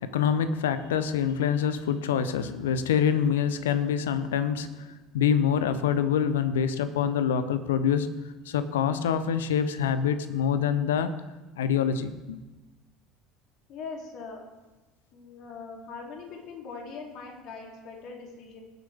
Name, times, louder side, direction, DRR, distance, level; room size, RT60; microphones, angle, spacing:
voice 1, 0.0-8.2 8.5-11.1 11.6-12.4, left 8 dB, 75° left, 12 dB, 0.8 m, -26 dB
voice 2, 13.7-14.4 15.1-18.6, left 4 dB, 55° left, 0 dB, 3.1 m, -41 dB
19.5 x 8.0 x 3.6 m, 1.1 s
hypercardioid pair, 65°, 0 cm